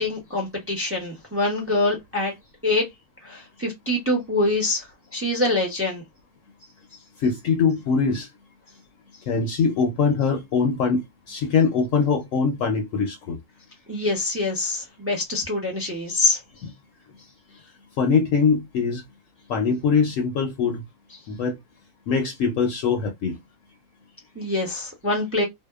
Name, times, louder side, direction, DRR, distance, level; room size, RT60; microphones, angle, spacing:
voice 1, 0.0-2.3 2.6-2.8 3.2-4.9 5.1-6.0 13.9-16.4 24.4-25.4, left 2 dB, 20° right, 0.4 m, -24 dB
voice 2, 7.2-8.3 9.3-13.4 16.6-16.7 18.0-19.0 19.5-20.8 21.3-21.6 22.1-23.4, left 5 dB, 70° left, 0.8 m, -22 dB
2.7 x 2.1 x 2.2 m
omnidirectional pair, 1.6 m